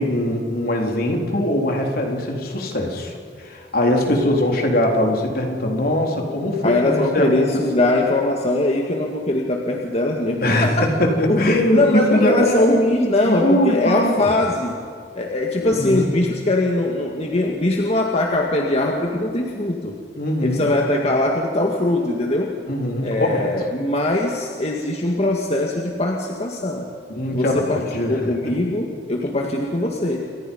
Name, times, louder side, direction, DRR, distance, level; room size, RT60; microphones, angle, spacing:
voice 1, 0.0-7.5 10.4-12.7 13.3-14.3 15.6-16.2 20.2-20.7 22.7-23.5 27.1-28.5, left 1 dB, 55° left, 1 dB, 3.9 m, -21 dB
voice 2, 6.6-10.9 11.3-14.8 15.1-20.0 20.4-22.6 23.0-26.9 27.3-27.8 28.1-30.3, left 1 dB, 35° left, 0 dB, 2.1 m, -21 dB
29.5 x 25.0 x 5.5 m, 2.3 s
head